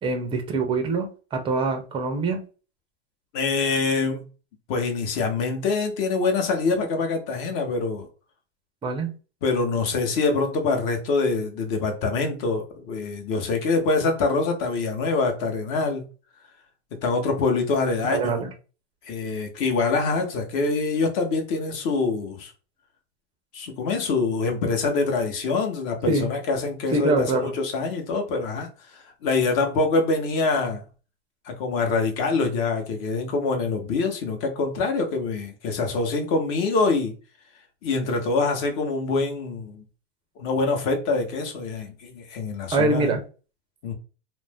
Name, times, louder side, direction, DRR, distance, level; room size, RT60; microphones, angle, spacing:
voice 1, 0.0-2.4 8.8-9.1 18.1-18.5 26.1-26.3 26.9-27.5 42.7-43.2, right 3 dB, 15° right, 0.5 m, -24 dB
voice 2, 3.3-4.3 4.7-8.1 9.4-16.1 17.0-18.4 19.0-22.5 23.5-30.8 31.5-37.1 37.8-39.8 40.4-43.1 43.8-43.9, left 3 dB, 45° left, 0.9 m, -25 dB
2.5 x 2.0 x 3.4 m
hypercardioid pair, 130°, 35 cm